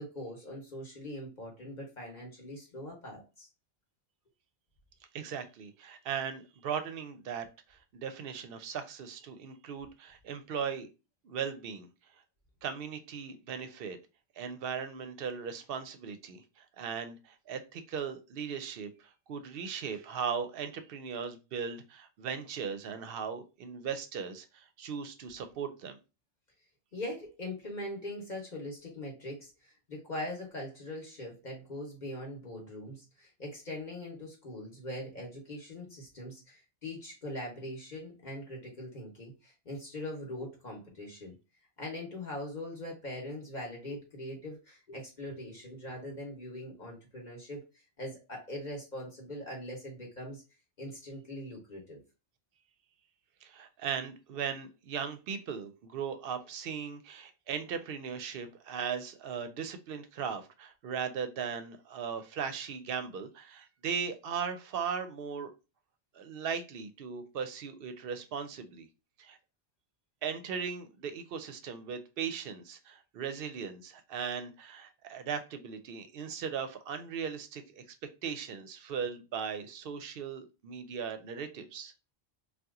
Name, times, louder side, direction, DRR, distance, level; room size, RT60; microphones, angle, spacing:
voice 1, 0.0-3.5 26.9-41.3 41.8-47.6 48.0-50.4 50.8-52.0, left 1 dB, 45° left, -1 dB, 0.9 m, -41 dB
voice 2, 5.1-10.9 11.2-11.9 12.6-14.0 14.4-26.0 53.4-65.5 66.1-68.9 69.2-69.4 70.2-77.8 78.2-81.9, right 7 dB, 65° right, 9 dB, 0.7 m, -38 dB
2.8 x 2.3 x 3.5 m, 0.29 s
omnidirectional pair, 1.2 m